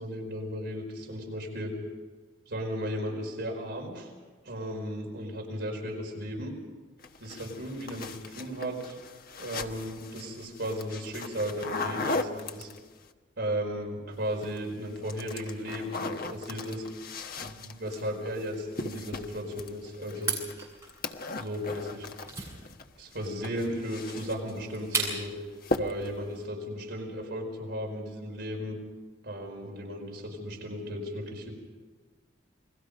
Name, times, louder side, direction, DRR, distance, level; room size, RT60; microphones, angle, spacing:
voice 1, 0.0-1.7 2.5-4.1 4.4-6.5 7.2-9.0 9.4-12.7 13.4-16.9 17.4-20.4 21.3-22.1 23.0-25.3 25.8-28.8 29.2-31.5, equal, 60° right, 1 dB, 4.7 m, -35 dB
sound 1, 7.0-13.1 14.2-14.7 15.0-22.8 23.1-24.6 24.9-25.2 25.6-26.2, left 2 dB, 50° left, 1.2 m, -38 dB
sound 2, 20.1-25.4, right 4 dB, 15° right, 7.2 m, -36 dB
29.0 x 21.5 x 5.3 m, 1.4 s
head